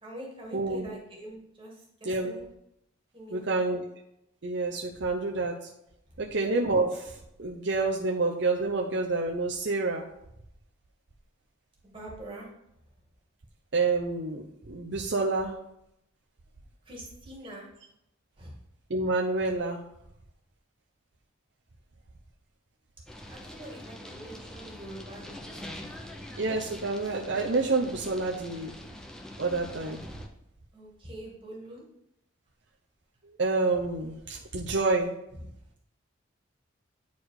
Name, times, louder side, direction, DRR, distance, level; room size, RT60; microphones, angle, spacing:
voice 1, 0.0-2.5 3.1-3.7 11.8-12.5 16.9-17.7 18.4-18.5 23.3-25.7 26.0-26.1 30.7-31.8 35.4-35.5, right 1 dB, 25° right, -3 dB, 2.1 m, -44 dB
voice 2, 0.5-0.9 2.0-2.3 3.3-3.8 4.4-5.5 6.2-7.1 7.4-10.0 13.7-15.5 18.9-19.8 26.4-28.7 29.4-30.0 33.4-35.1, right 3 dB, 60° right, -1 dB, 0.8 m, -28 dB
sound 1, 23.1-30.3, left 1 dB, 5° left, 0.7 m, -44 dB
9.5 x 4.3 x 4.8 m, 0.80 s
head